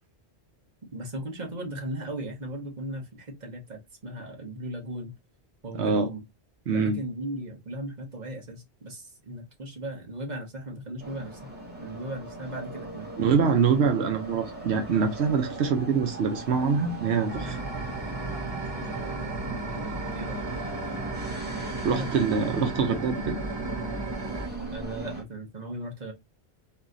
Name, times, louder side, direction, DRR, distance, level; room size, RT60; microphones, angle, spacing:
voice 1, 0.9-5.1 5.6-6.2 6.7-11.4 11.8-13.1 18.8-21.0 21.9-22.3 24.7-26.1, right 1 dB, 40° right, 1.4 m, -37 dB
voice 2, 5.8-6.1 6.7-7.0 13.2-17.6 21.8-23.4, right 5 dB, 85° right, 1.0 m, -24 dB
sound 1, 11.0-25.2, right 2 dB, 10° right, 1.7 m, -38 dB
sound 2, 17.3-24.5, right 3 dB, 25° right, 0.9 m, -35 dB
4.2 x 2.7 x 3.8 m
omnidirectional pair, 1.1 m